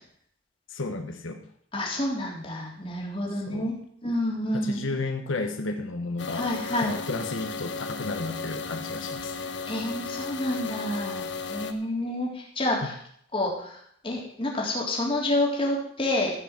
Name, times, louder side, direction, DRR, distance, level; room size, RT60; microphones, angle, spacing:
voice 1, 0.7-1.5 3.5-3.7 4.1-4.2 4.5-9.4, left 3 dB, 85° left, 5 dB, 1.2 m, -33 dB
voice 2, 1.7-3.7 4.0-4.9 6.3-6.9 9.7-12.9 13.3-16.3, left 1 dB, 25° left, -2 dB, 3.4 m, -29 dB
sound 1, 6.2-11.7, left 4 dB, 60° left, 1.2 m, -35 dB
14.5 x 6.1 x 7.4 m, 0.66 s
head